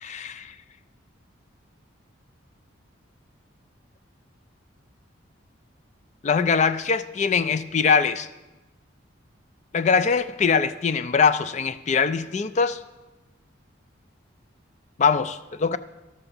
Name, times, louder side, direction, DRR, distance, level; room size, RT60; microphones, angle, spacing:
voice 1, 0.0-0.5 6.2-8.3 9.7-12.8 15.0-15.8, left 5 dB, 35° left, 0.3 m, -22 dB
12.0 x 6.9 x 5.3 m
head